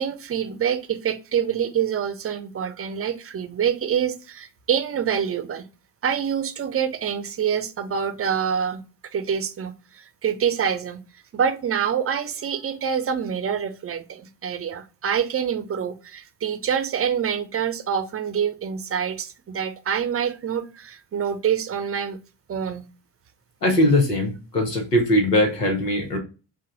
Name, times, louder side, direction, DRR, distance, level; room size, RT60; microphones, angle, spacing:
voice 1, 0.0-5.7 6.0-8.8 9.1-11.0 11.3-22.2 22.5-22.9, right 8 dB, 30° right, 0.6 m, -26 dB
voice 2, 23.6-26.2, left 1 dB, 85° left, 1.0 m, -20 dB
5.1 x 2.2 x 3.8 m
figure-of-eight pair, 45°, 47 cm